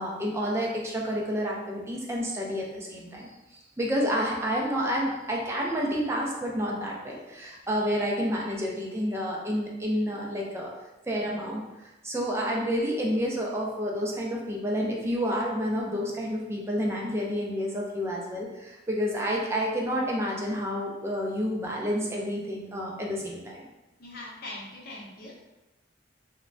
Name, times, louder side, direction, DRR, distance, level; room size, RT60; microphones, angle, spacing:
voice 1, 0.0-10.7 11.1-11.6 12.0-23.6, equal, 15° right, -2 dB, 0.4 m, -29 dB
voice 2, 24.0-25.3, left 2 dB, 50° left, -3 dB, 0.7 m, -41 dB
3.0 x 2.2 x 2.5 m, 1.0 s
head